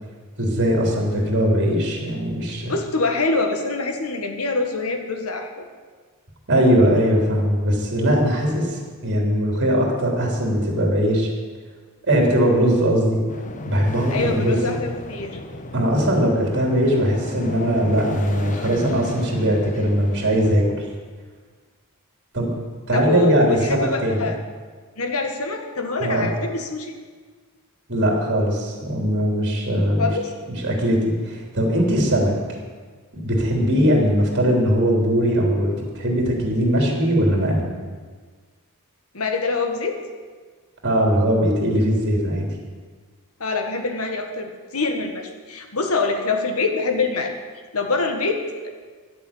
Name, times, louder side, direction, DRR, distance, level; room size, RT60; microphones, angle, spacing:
voice 1, 0.4-2.7 6.5-11.3 12.1-13.2 13.6-14.6 15.7-20.8 22.3-22.5 22.9-24.2 26.0-26.3 27.9-30.1 30.6-32.3 33.2-37.7 40.8-42.5, equal, 55° right, 0 dB, 3.5 m, -20 dB
voice 2, 2.7-5.7 14.1-15.4 22.9-24.4 25.0-26.9 30.0-30.3 39.1-40.0 43.4-47.3 47.7-48.7, left 3 dB, 75° left, 5 dB, 1.6 m, -25 dB
sound 1, 13.3-20.6, left 1 dB, 35° left, 1.0 m, -34 dB
11.0 x 8.4 x 8.7 m, 1.5 s
head